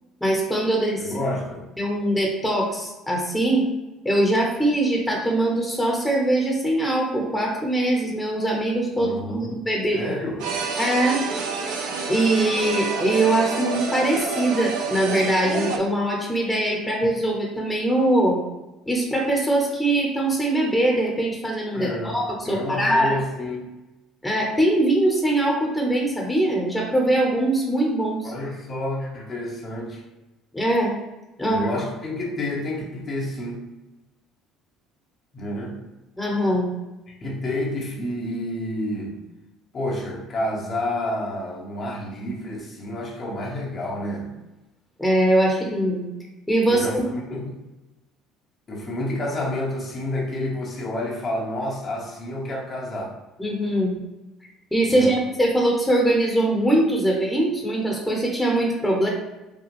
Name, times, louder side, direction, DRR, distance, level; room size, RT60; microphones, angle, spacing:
voice 1, 0.2-1.1 1.8-3.7 4.0-10.2 10.8-11.2 12.1-18.4 18.9-23.1 24.2-28.3 30.5-30.9 31.4-31.8 36.2-36.7 45.0-46.1 46.5-47.0 53.4-53.9 54.7-59.1, right 1 dB, 10° left, -1 dB, 1.1 m, -22 dB
voice 2, 1.0-1.7 9.0-9.5 9.9-10.6 21.7-22.2 22.4-23.7 28.2-30.0 31.4-33.6 35.3-35.8 37.1-39.2 39.7-44.3 46.7-47.5 48.7-53.2 54.8-55.1, left 1 dB, 40° left, -2 dB, 1.0 m, -29 dB
sound 1, 10.4-15.8, right 5 dB, 65° right, 0.5 m, -28 dB
5.2 x 2.3 x 3.4 m, 1.0 s
hypercardioid pair, 60°, 0 cm